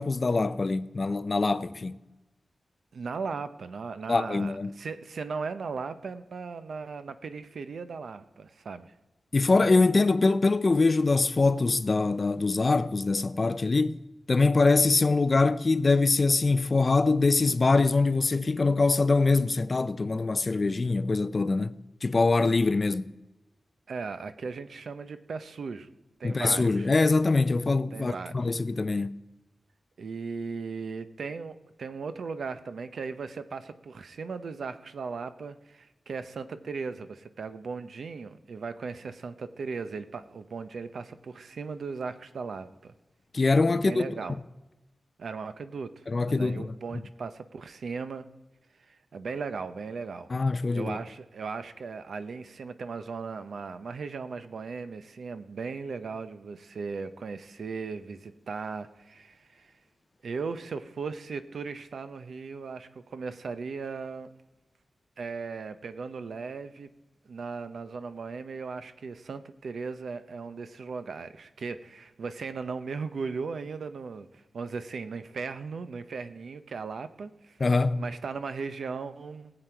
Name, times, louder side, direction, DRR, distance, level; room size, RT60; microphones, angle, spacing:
voice 1, 0.0-2.0 4.1-4.7 9.3-14.0 14.3-21.7 22.0-23.1 26.2-29.1 43.3-44.0 46.1-46.7 50.3-51.0 77.6-78.0, left 3 dB, 35° left, 0.4 m, -23 dB
voice 2, 2.9-8.9 23.9-25.9 26.2-26.9 27.9-28.5 30.0-42.9 43.7-44.4 45.2-48.3 48.8-50.3 50.7-59.7 60.2-64.3 65.2-66.9 67.2-77.6 78.0-79.5, right 5 dB, 70° right, 0.7 m, -37 dB
19.0 x 7.8 x 4.5 m
wide cardioid pair, 155°, 0 cm